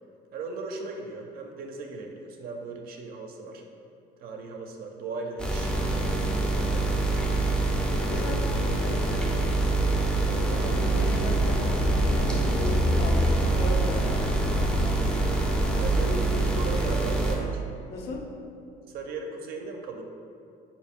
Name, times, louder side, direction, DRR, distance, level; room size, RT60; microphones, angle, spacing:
voice 1, 0.3-3.6 4.2-6.9 7.7-8.5 10.5-10.7 15.8-17.7 18.9-20.0, right 4 dB, 65° right, 2 dB, 0.4 m, -38 dB
sound 1, 5.4-17.3, right 2 dB, 5° left, 0.5 m, -25 dB
voice 2, 8.1-9.3 10.2-14.1 15.7-17.0 17.9-18.4, left 2 dB, 75° left, 1 dB, 0.6 m, -37 dB
4.1 x 2.6 x 3.5 m, 2.5 s
cardioid pair, 110°, 17 cm